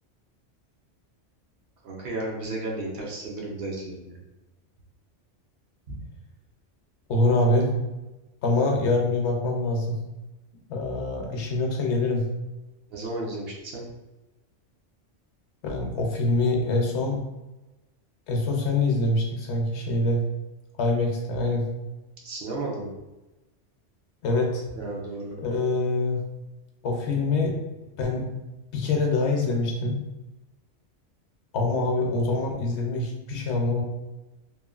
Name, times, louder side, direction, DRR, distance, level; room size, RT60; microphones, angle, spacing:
voice 1, 1.8-4.2 12.9-13.8 22.2-22.9 24.8-25.3, right 2 dB, 60° right, -2 dB, 0.7 m, -33 dB
voice 2, 7.1-7.7 8.4-10.0 10.7-12.3 15.6-17.2 18.3-20.2 20.8-21.7 24.2-24.7 25.4-26.2 26.8-27.5 28.0-28.3 28.7-30.0 31.5-33.8, left 2 dB, 70° left, 1 dB, 0.8 m, -24 dB
3.0 x 2.2 x 2.3 m, 1.0 s
omnidirectional pair, 1.2 m